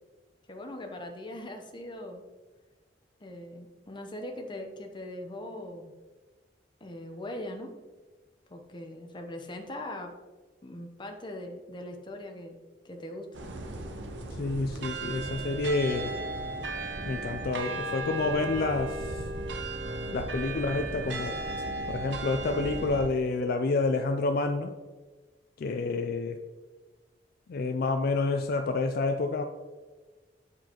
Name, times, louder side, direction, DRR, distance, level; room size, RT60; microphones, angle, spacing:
voice 1, 0.5-2.2 3.2-5.9 6.8-7.7 8.5-10.1 10.6-12.6 12.8-13.3 14.8-14.9, left 1 dB, 25° left, 4 dB, 0.7 m, -40 dB
sound 1, 13.3-23.1, right 2 dB, 85° right, 0.7 m, -35 dB
voice 2, 14.4-16.1 17.1-19.2 20.1-21.4 21.9-24.7 25.6-26.4 27.5-29.4, left 3 dB, 55° left, 6 dB, 0.4 m, -29 dB
8.1 x 4.7 x 2.9 m, 1.3 s
head